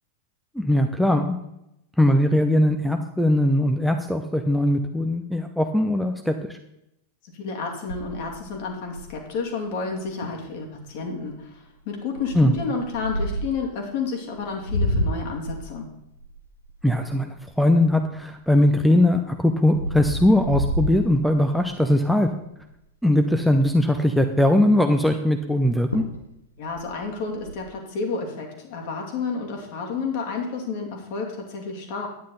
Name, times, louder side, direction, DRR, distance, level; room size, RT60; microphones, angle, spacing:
voice 1, 0.6-1.4 2.0-6.6 12.3-12.5 16.8-22.3 23.0-26.0, left 1 dB, ahead, 6 dB, 0.7 m, -20 dB
voice 2, 7.3-15.9 26.6-32.1, left 4 dB, 50° left, 1 dB, 2.4 m, -30 dB
sound 1, 7.9-9.3 9.9-10.0 10.2-10.5 11.0-11.3 12.1-13.6 14.3-18.2 18.7-21.7 22.2-22.4 22.7-22.8 23.1-23.8 25.5-25.6 25.9-26.3 26.6-27.5, equal, 80° left, 1.1 m, -30 dB
10.5 x 9.5 x 3.9 m, 0.82 s
figure-of-eight pair, 90°, 0 cm